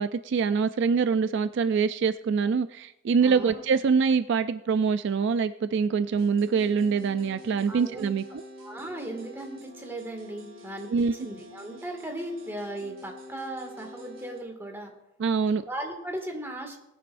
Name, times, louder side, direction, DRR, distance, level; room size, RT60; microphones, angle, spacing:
voice 1, 0.0-8.2 10.9-11.2 15.2-15.6, right 5 dB, 65° right, 12 dB, 0.4 m, -24 dB
voice 2, 3.2-3.6 7.7-8.1 8.6-14.9 15.6-16.8, right 1 dB, 10° right, 1 dB, 2.0 m, -37 dB
sound 1, 6.1-14.4, left 1 dB, 80° right, 2.3 m, -46 dB
20.5 x 9.6 x 2.6 m, 0.87 s
head